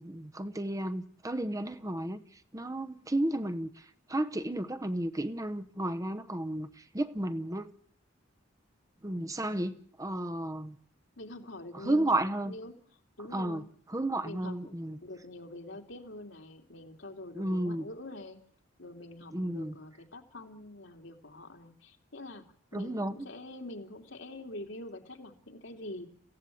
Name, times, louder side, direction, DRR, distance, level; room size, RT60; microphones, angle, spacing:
voice 1, 0.0-7.7 9.0-10.8 11.8-12.5 13.3-13.6 13.9-15.0 17.3-17.8 19.3-19.7 22.7-23.3, right 1 dB, 15° right, 0.9 m, -33 dB
voice 2, 11.2-12.7 13.2-13.7 14.2-14.7 15.0-18.4 18.8-22.4 22.7-26.1, left 1 dB, 75° left, 2.9 m, -45 dB
27.5 x 16.0 x 8.6 m
head